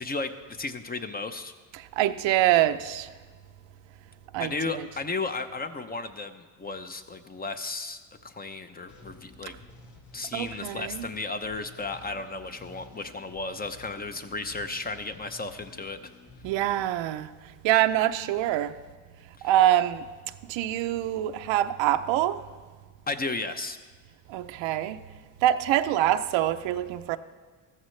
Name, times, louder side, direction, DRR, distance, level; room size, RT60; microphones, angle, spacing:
voice 1, 0.0-1.5 4.4-9.5 10.1-16.1 19.4-19.5 23.1-23.8, left 3 dB, 20° left, 0.6 m, -34 dB
voice 2, 1.7-3.1 4.3-4.9 10.3-11.1 16.4-17.3 17.6-18.7 19.4-20.1 20.5-22.4 24.3-25.0 25.4-27.2, right 13 dB, 75° right, 0.7 m, -25 dB
sound 1, 8.9-17.7, left 2 dB, 80° left, 3.0 m, -52 dB
14.5 x 14.0 x 3.2 m
cardioid pair, 95°, 46 cm